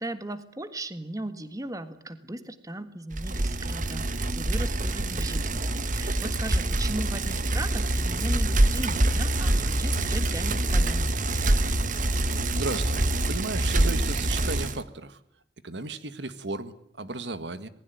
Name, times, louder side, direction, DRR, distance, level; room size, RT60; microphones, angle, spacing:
voice 1, 0.0-11.1, right 1 dB, 20° right, 11 dB, 1.6 m, -37 dB
Bicycle, 3.1-14.8, right 1 dB, 45° right, 1.4 m, -25 dB
voice 2, 12.3-15.2 15.6-17.7, right 2 dB, 70° right, 12 dB, 1.8 m, -35 dB
27.0 x 20.0 x 9.3 m, 0.66 s
head